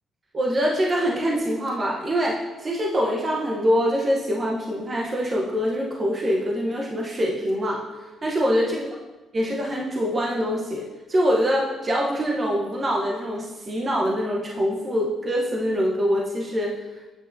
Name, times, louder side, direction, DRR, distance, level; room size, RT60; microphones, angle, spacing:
voice 1, 0.3-7.8 8.2-8.9 9.3-16.8, equal, 35° right, -2 dB, 1.0 m, -24 dB
8.8 x 6.5 x 2.7 m, 1.2 s
cardioid pair, 90°, 0 cm